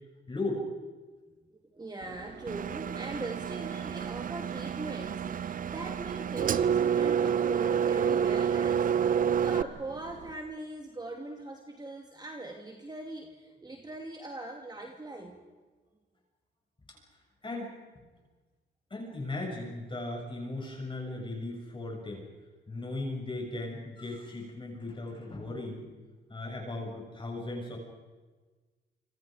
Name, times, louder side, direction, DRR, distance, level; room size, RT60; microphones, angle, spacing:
voice 1, 0.3-0.6 17.4-17.7 18.9-22.3 22.7-25.9 26.3-27.8, left 2 dB, 25° left, 0 dB, 7.1 m, -37 dB
voice 2, 1.3-15.4, right 2 dB, 20° right, 2 dB, 2.7 m, -41 dB
sound 1, 2.0-10.4, right 7 dB, 65° right, 1.9 m, -49 dB
Engine, 2.5-9.6, right 8 dB, 45° right, 0.6 m, -29 dB
28.0 x 25.5 x 5.1 m, 1.3 s
cardioid pair, 90°, 20 cm